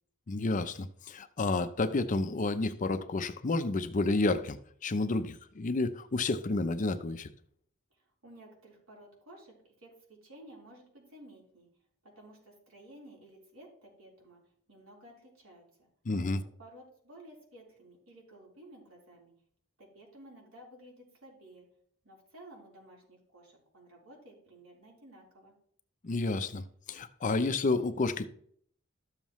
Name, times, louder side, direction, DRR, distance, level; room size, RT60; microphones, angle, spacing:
voice 1, 0.3-7.3 16.1-16.4 26.0-28.3, left 3 dB, 35° left, 0.5 m, -30 dB
voice 2, 7.9-11.7 12.0-14.4 14.7-15.9 16.6-19.3 19.8-21.7 22.0-25.5, right 1 dB, 70° right, 3.8 m, -54 dB
13.0 x 7.2 x 3.1 m
head